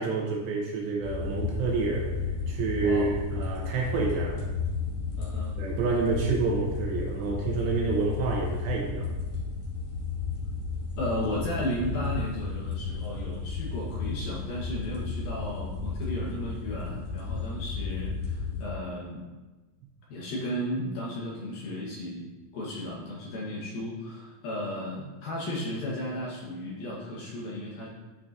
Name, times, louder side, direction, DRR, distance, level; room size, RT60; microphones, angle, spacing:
voice 1, 0.0-2.1 2.5-4.4 5.6-9.1, right 4 dB, 75° right, -1 dB, 2.7 m, -28 dB
sound 1, 1.0-18.7, left 4 dB, 55° left, 3.3 m, -33 dB
voice 2, 2.8-3.1 5.2-5.5 11.0-19.3 20.1-22.3 22.5-27.9, left 1 dB, 75° left, -5 dB, 2.2 m, -34 dB
13.5 x 5.6 x 2.6 m, 1.2 s
omnidirectional pair, 5.9 m